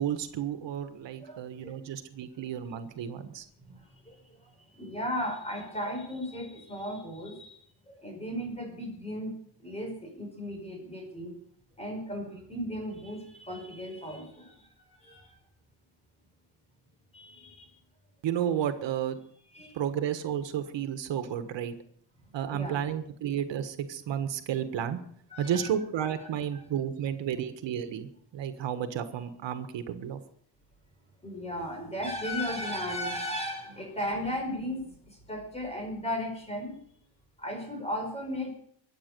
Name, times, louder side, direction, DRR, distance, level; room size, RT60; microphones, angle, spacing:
voice 1, 0.0-3.4 18.2-19.2 19.7-21.7 22.3-25.0 25.4-30.2, right 9 dB, 85° right, 9 dB, 1.5 m, -32 dB
voice 2, 1.2-1.7 3.6-7.6 7.9-11.3 11.8-14.7 15.0-15.4 17.1-17.7 19.5-19.8 22.5-22.8 25.3-25.7 26.2-26.7 31.2-36.7 37.4-38.5, equal, 15° left, 2 dB, 5.3 m, -36 dB
23.5 x 8.9 x 6.8 m, 0.64 s
wide cardioid pair, 170°, 43 cm